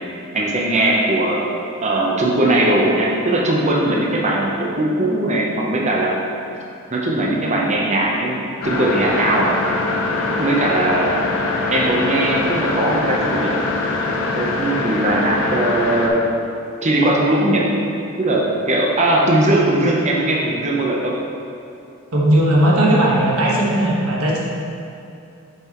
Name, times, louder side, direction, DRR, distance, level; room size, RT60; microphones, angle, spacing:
voice 1, 0.3-6.2 6.9-9.5 10.4-11.3 11.7-13.5 14.3-16.3 16.8-17.7 18.2-21.2, right 1 dB, 30° right, -3 dB, 0.7 m, -19 dB
sound 1, 8.6-16.1, left 2 dB, 75° left, 0.8 m, -23 dB
voice 2, 22.1-24.4, right 1 dB, 85° right, -4 dB, 1.4 m, -16 dB
7.6 x 5.7 x 3.0 m, 2.7 s
head